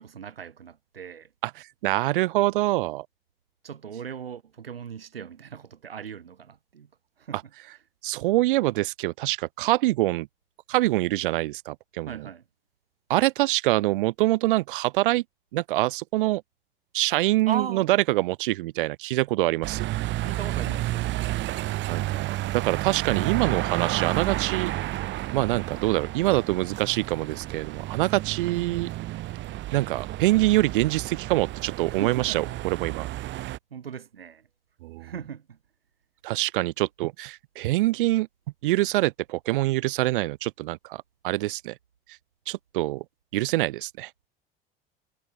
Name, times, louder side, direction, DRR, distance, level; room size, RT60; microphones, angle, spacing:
voice 1, 0.0-1.3 3.6-6.9 7.2-7.4 12.0-12.4 17.5-18.0 20.2-21.3 31.9-32.6 33.0-33.3 33.7-34.5 35.0-35.6, right 7 dB, 80° right, 2.4 m, -38 dB
voice 2, 1.4-3.1 8.0-10.3 10.7-12.1 13.1-15.2 15.5-16.4 16.9-19.9 21.9-24.7 25.3-28.9 29.7-33.1 34.8-35.1 36.2-38.3 38.6-41.7 42.5-43.0 43.3-44.1, right 18 dB, 65° right, 0.5 m, -25 dB
sound 1, 19.6-33.6, right 16 dB, 40° right, 0.9 m, -31 dB
figure-of-eight pair, 70°, 29 cm